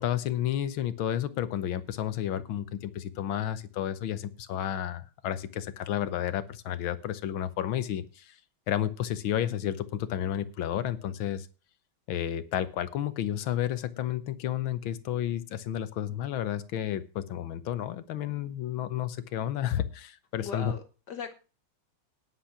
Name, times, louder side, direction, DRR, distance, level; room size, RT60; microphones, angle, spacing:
voice 1, 0.0-8.3 8.7-11.5 12.1-20.7, left 11 dB, 75° left, 14 dB, 1.6 m, -31 dB
voice 2, 20.4-21.3, left 6 dB, 60° left, 8 dB, 1.5 m, -39 dB
10.0 x 8.7 x 5.8 m, 0.33 s
omnidirectional pair, 2.3 m